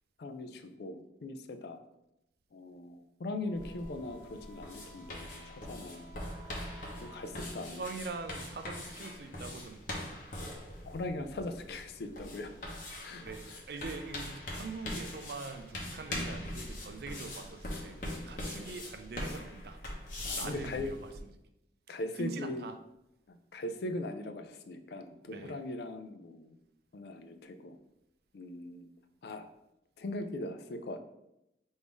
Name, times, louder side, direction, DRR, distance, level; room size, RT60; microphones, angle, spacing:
voice 1, 0.2-1.8 2.5-6.1 7.0-7.8 10.8-12.6 13.0-13.6 17.1-17.2 20.2-20.9 21.9-22.6 23.3-26.6 26.9-27.8 28.3-28.9 29.2-29.5 30.0-31.0, left 2 dB, 65° left, 8 dB, 0.4 m, -40 dB
Wind instrument woodwind instrument, 3.4-7.6, right 1 dB, 10° left, 1.5 m, -56 dB
sound 1, 3.5-21.2, left 1 dB, 45° left, 0.8 m, -42 dB
voice 2, 7.7-10.3 13.1-19.8 20.3-21.1 22.2-22.7 25.3-25.6, right 4 dB, 60° right, 7 dB, 0.4 m, -43 dB
3.5 x 2.6 x 4.6 m, 0.86 s
head